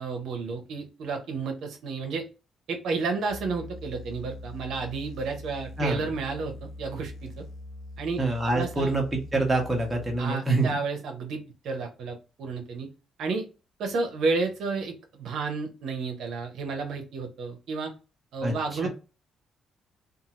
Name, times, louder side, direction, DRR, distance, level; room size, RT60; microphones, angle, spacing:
voice 1, 0.0-2.2 2.7-7.4 8.0-8.2 8.5-8.9 10.2-12.9 13.2-13.5 13.8-17.9 18.3-18.9, right 4 dB, 75° right, 4 dB, 0.6 m, -31 dB
sound 1, 3.3-10.2, left 2 dB, 65° left, 0.7 m, -43 dB
voice 2, 8.2-10.7 18.4-18.9, right 2 dB, 15° right, 1 dB, 1.1 m, -26 dB
2.7 x 2.3 x 2.9 m, 0.32 s
cardioid pair, 90°, 0 cm